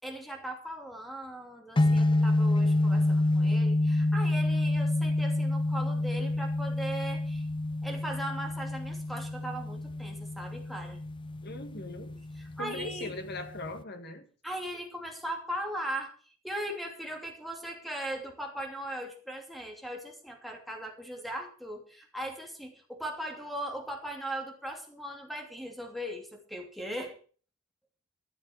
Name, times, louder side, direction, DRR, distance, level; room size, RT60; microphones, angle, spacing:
voice 1, 0.0-7.5 7.8-11.0 12.4-13.1 14.4-27.2, right 1 dB, ahead, 2.8 m, -39 dB
sound 1, 1.8-13.8, left 2 dB, 25° left, 0.6 m, -28 dB
voice 2, 11.4-12.2 12.6-14.3, left 2 dB, 50° left, 1.9 m, -40 dB
14.0 x 7.2 x 7.2 m
head